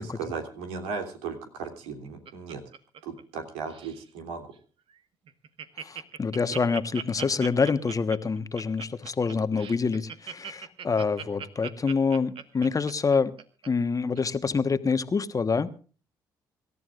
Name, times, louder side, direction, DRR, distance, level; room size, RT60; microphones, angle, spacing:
voice 1, 0.0-2.6 3.0-4.5, right 5 dB, 75° right, 4 dB, 3.1 m, -36 dB
Laughter, 1.6-3.4 3.7-4.0 4.5-4.6 4.9-5.0 5.3-13.7 14.2-14.3, right 7 dB, 55° right, 1.5 m, -40 dB
voice 2, 5.8-13.3 13.7-15.7, left 5 dB, 35° left, 11 dB, 1.3 m, -26 dB
26.0 x 14.0 x 2.5 m, 0.38 s
hypercardioid pair, 50°, 11 cm